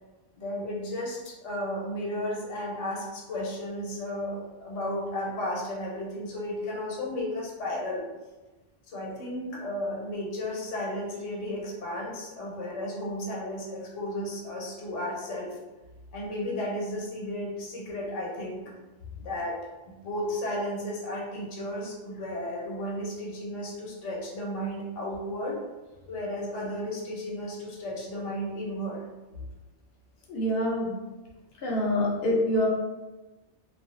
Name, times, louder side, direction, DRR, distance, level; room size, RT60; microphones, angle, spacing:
voice 1, 0.3-8.1 8.9-15.6 16.1-18.6 19.2-19.6 19.8-25.6 26.1-29.1, left 1 dB, 85° left, -3 dB, 1.0 m, -34 dB
voice 2, 30.3-30.9 31.6-32.7, left 1 dB, 60° left, -3 dB, 0.7 m, -25 dB
2.4 x 2.2 x 2.4 m, 1.1 s
omnidirectional pair, 1.2 m